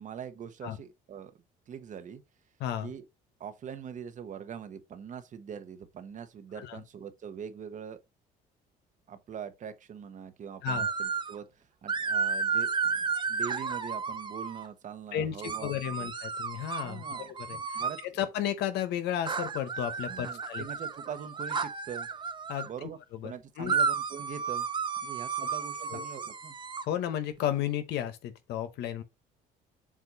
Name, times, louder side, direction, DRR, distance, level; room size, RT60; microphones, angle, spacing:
voice 1, 0.0-1.3 1.7-2.2 2.8-3.0 3.4-8.0 9.1-15.7 16.0-16.1 16.8-18.3 20.1-22.1 22.6-24.7 25.0-26.5, right 7 dB, 50° right, 1.1 m, -43 dB
voice 2, 2.6-2.9 6.6-6.8 10.6-10.9 15.1-15.3 15.6-17.0 17.4-17.6 18.2-20.6 22.5-22.9 23.2-23.8 25.4-25.5 25.9-26.0 26.9-29.0, left 11 dB, 80° left, 1.1 m, -33 dB
sound 1, 10.7-11.4 11.9-14.7 15.4-18.1 19.3-22.7 23.7-26.8, right 5 dB, 30° right, 0.9 m, -32 dB
7.5 x 2.6 x 5.4 m
cardioid pair, 110°, 17 cm